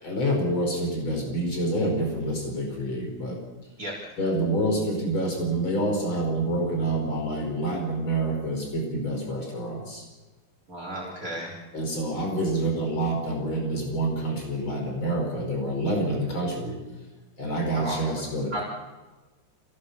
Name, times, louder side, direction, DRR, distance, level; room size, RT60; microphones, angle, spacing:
voice 1, 0.0-3.4 4.2-10.1 11.7-16.8 17.4-18.6, right 1 dB, 80° left, 1 dB, 6.0 m, -27 dB
voice 2, 10.7-11.5 17.7-18.1 18.5-18.6, right 1 dB, 45° right, -3 dB, 4.3 m, -33 dB
27.0 x 18.0 x 6.9 m, 1.2 s
omnidirectional pair, 2.2 m